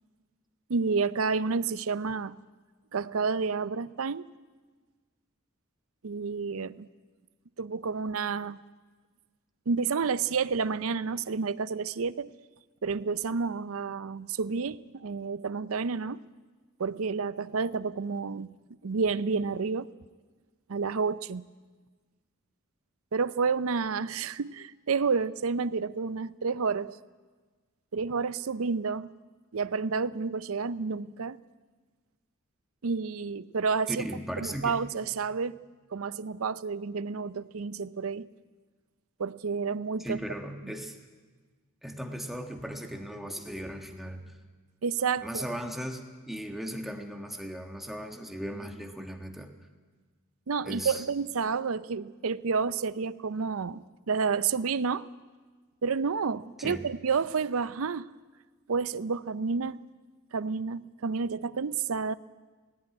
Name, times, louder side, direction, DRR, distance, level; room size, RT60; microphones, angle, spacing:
voice 1, 0.7-2.4 2.9-4.3 6.0-6.9 7.6-8.6 9.7-12.3 12.8-16.2 16.8-18.5 18.8-19.9 20.7-21.4 23.1-27.0 27.9-29.1 29.5-31.4 32.8-34.0 34.4-35.6 35.9-38.3 39.2-40.2 40.6-40.7 44.8-45.5 50.5-55.1 55.8-58.1 58.7-59.8 60.3-62.1, right 5 dB, 75° right, 16 dB, 0.6 m, -30 dB
voice 2, 33.9-34.7 40.0-40.9 41.8-44.3 45.2-49.5 50.6-51.0 56.6-56.8, equal, ahead, 4 dB, 1.5 m, -37 dB
17.5 x 17.0 x 9.6 m, 1.4 s
head